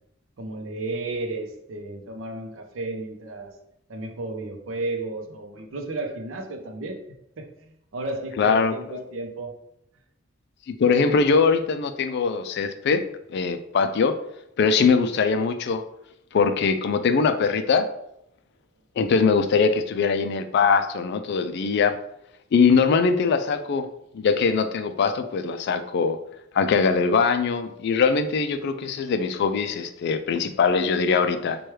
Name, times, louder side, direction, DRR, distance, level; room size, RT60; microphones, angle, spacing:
voice 1, 0.4-3.5 3.9-7.0 7.4-9.6, right 2 dB, 80° right, 4 dB, 0.6 m, -33 dB
voice 2, 8.4-9.0 10.7-13.0 13.3-14.2 14.6-15.8 16.3-17.9 19.0-22.0 22.5-23.9 24.1-26.2 26.5-31.6, left 5 dB, 60° left, 10 dB, 0.3 m, -22 dB
4.5 x 2.3 x 3.1 m, 0.76 s
head